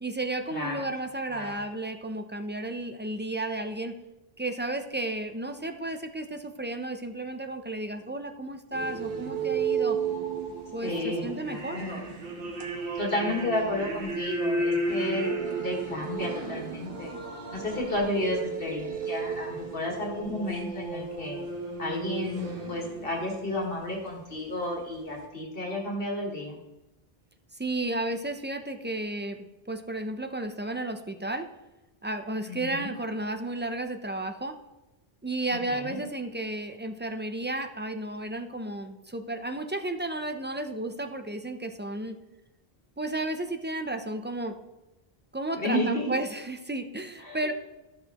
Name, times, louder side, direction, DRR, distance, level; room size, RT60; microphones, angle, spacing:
voice 1, 0.0-4.0 4.4-10.0 10.7-11.8 18.1-18.3 27.5-31.5 32.0-34.6 35.2-42.2 43.0-44.6 45.3-47.5, right 2 dB, 20° right, 7 dB, 0.3 m, -33 dB
sound 1, 8.7-24.6, right 4 dB, 65° right, 1.3 m, -33 dB
voice 2, 10.8-12.1 13.0-15.3 15.6-17.2 17.5-21.4 21.8-26.6 32.5-32.9 35.7-36.0 45.6-46.1 47.2-47.4, left 1 dB, 65° left, -1 dB, 1.8 m, -32 dB
13.5 x 6.4 x 2.9 m, 1.0 s
omnidirectional pair, 1.0 m